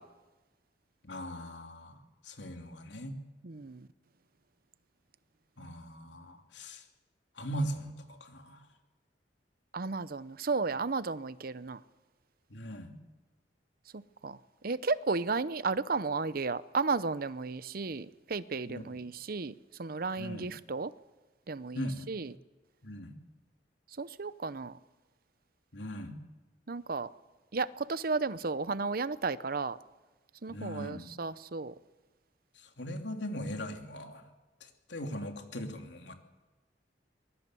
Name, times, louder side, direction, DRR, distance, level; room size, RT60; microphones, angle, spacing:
voice 1, 1.0-2.0 2.2-3.2 5.6-6.8 7.3-8.7 12.5-12.9 18.6-18.9 20.2-20.5 21.7-22.1 22.8-23.1 25.7-26.2 30.5-31.1 32.5-34.2 34.6-36.1, equal, 85° left, 3.1 m, -39 dB
voice 2, 3.4-3.9 9.7-11.8 13.9-14.4 14.6-19.5 19.8-20.9 21.5-22.3 24.0-24.7 26.7-27.1 27.5-29.8 30.4-31.7, right 4 dB, 55° right, 0.7 m, -33 dB
23.0 x 22.0 x 7.8 m
head